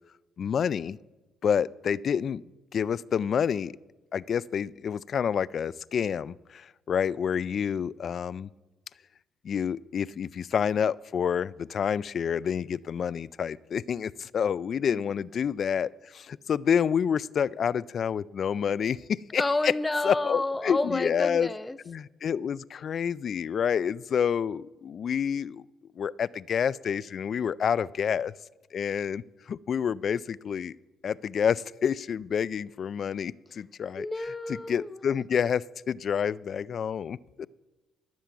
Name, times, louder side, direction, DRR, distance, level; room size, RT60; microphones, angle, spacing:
voice 1, 0.4-1.0 1.4-2.4 2.7-3.7 4.1-8.5 9.4-19.7 20.0-21.5 21.9-25.7 26.0-28.3 28.7-29.2 29.5-30.8 31.0-34.1 34.7-37.5, left 7 dB, 55° left, 20 dB, 0.3 m, -28 dB
voice 2, 19.4-21.8 34.0-35.0, left 2 dB, 15° left, 13 dB, 0.7 m, -30 dB
13.0 x 7.5 x 7.0 m, 1.1 s
cardioid pair, 90°, 0 cm